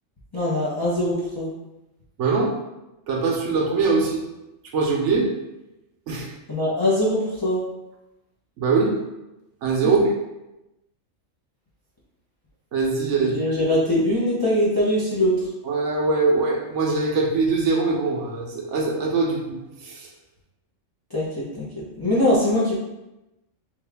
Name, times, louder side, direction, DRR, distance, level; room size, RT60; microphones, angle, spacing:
voice 1, 0.3-1.5 6.5-7.6 9.8-9.9 13.3-15.3 21.1-21.7 21.9-22.7, left 1 dB, 25° left, -7 dB, 0.5 m, -22 dB
voice 2, 2.2-2.5 3.1-4.2 4.7-5.3 6.1-6.3 8.6-8.9 9.6-10.0 12.7-13.3 15.6-20.1, right 4 dB, 70° right, 0 dB, 0.9 m, -22 dB
3.2 x 2.5 x 3.3 m, 0.96 s
omnidirectional pair, 1.4 m